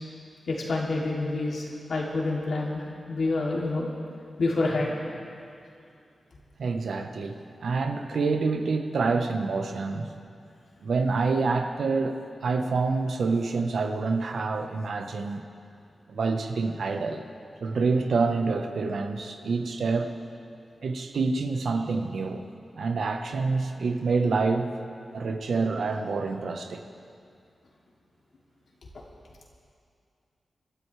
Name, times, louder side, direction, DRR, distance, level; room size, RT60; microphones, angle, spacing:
voice 1, 0.5-3.9 4.4-5.0, left 2 dB, 75° left, -3 dB, 2.9 m, -28 dB
voice 2, 6.6-10.1 10.8-12.2 12.4-15.4 16.1-17.2 17.6-20.1 20.8-22.4 22.8-24.7 25.1-26.8, right 4 dB, 80° right, 5 dB, 1.1 m, -27 dB
26.5 x 13.0 x 3.4 m, 2.4 s
cardioid pair, 65°, 0 cm